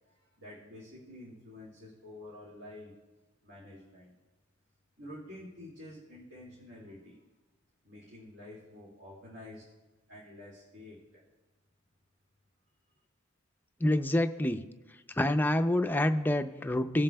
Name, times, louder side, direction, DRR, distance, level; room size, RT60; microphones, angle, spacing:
voice 1, 0.1-3.0 3.4-4.1 5.0-7.2 7.8-9.7 10.1-11.3, left 1 dB, 65° right, -5 dB, 2.1 m, -49 dB
voice 2, 13.8-14.6 15.1-17.0, left 1 dB, 10° left, 7 dB, 0.4 m, -27 dB
18.0 x 7.5 x 2.2 m, 1.2 s
head